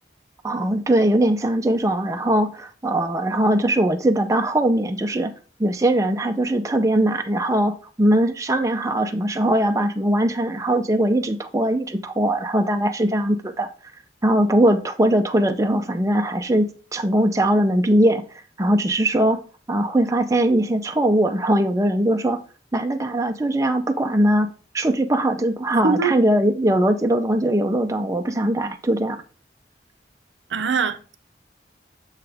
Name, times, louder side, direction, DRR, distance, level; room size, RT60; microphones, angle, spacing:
voice 1, 0.4-5.3 5.6-13.7 14.2-18.2 18.6-19.4 19.7-22.4 22.7-29.2, right 1 dB, 15° right, 0.5 m, -20 dB
voice 2, 30.5-31.2, right 5 dB, 85° right, 0.6 m, -22 dB
6.8 x 5.7 x 3.4 m
head